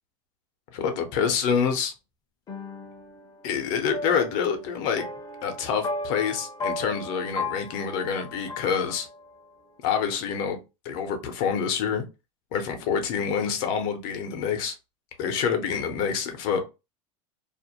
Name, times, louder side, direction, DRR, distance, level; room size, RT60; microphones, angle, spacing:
voice 1, 0.7-1.9 3.4-5.1 5.4-9.1 9.8-10.6 10.8-12.0 12.5-14.7 15.2-16.6, left 7 dB, 60° left, 0.7 m, -27 dB
sound 1, 2.5-9.4, left 2 dB, 25° left, 0.5 m, -36 dB
2.5 x 2.1 x 2.8 m
supercardioid pair, 130°, 17 cm